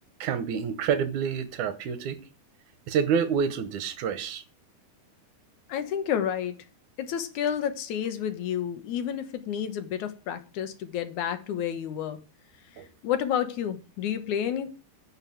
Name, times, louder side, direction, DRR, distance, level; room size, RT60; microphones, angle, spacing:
voice 1, 0.2-2.2 2.9-4.4 12.8-12.9, right 7 dB, 75° right, 2.5 m, -28 dB
voice 2, 5.7-6.5 7.0-12.2 13.0-14.7, left 9 dB, 75° left, 2.6 m, -30 dB
10.0 x 5.7 x 7.7 m
omnidirectional pair, 3.6 m